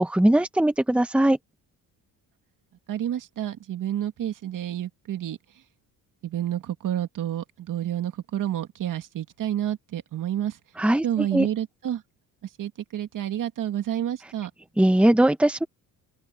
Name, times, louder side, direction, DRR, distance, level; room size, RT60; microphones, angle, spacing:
voice 1, 0.0-1.4 10.8-11.0 11.3-11.5 14.8-15.6, right 1 dB, 5° right, 1.2 m, -20 dB
voice 2, 2.9-5.4 6.2-10.6 11.0-12.0 12.4-14.5, right 11 dB, 60° right, 2.2 m, -29 dB
open air
cardioid pair, 120°, 36 cm